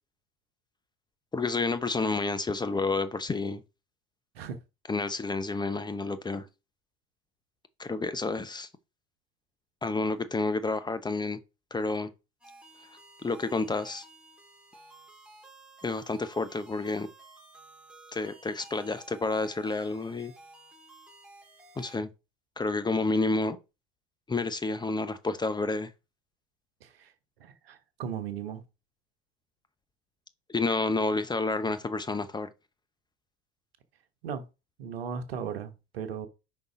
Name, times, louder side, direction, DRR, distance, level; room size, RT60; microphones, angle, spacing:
voice 1, 1.3-3.6 4.9-6.5 7.8-8.7 9.8-11.4 11.7-12.1 13.2-14.1 15.8-17.1 18.1-20.3 21.8-22.1 22.6-23.6 24.3-25.9 30.5-32.5, left 3 dB, 15° left, 0.7 m, -30 dB
sound 1, 12.4-22.0, right 2 dB, 5° right, 2.6 m, -53 dB
voice 2, 26.8-27.1 27.4-28.6 34.2-34.5 34.8-36.3, right 7 dB, 85° right, 1.1 m, -37 dB
5.3 x 4.0 x 5.0 m
hypercardioid pair, 80°, 29 cm